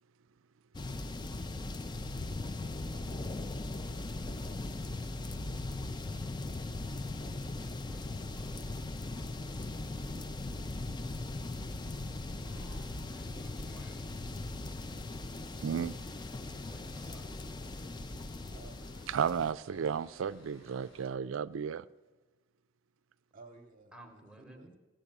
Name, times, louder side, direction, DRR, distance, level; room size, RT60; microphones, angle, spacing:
sound 1, 0.7-19.5, left 2 dB, 20° left, 0.4 m, -39 dB
sound 2, 2.6-21.1, equal, 90° left, 5.6 m, -60 dB
voice 1, 3.6-4.7 7.5-8.1 8.3-8.6 9.6-10.8 12.9-14.1 16.7-17.2 23.9-24.8, right 1 dB, 5° right, 1.0 m, -58 dB
voice 2, 15.6-16.0 19.1-21.9, right 7 dB, 70° right, 0.4 m, -33 dB
voice 3, 18.5-19.1 19.7-20.0 23.3-24.8, right 3 dB, 40° right, 0.8 m, -56 dB
16.5 x 8.1 x 8.7 m
head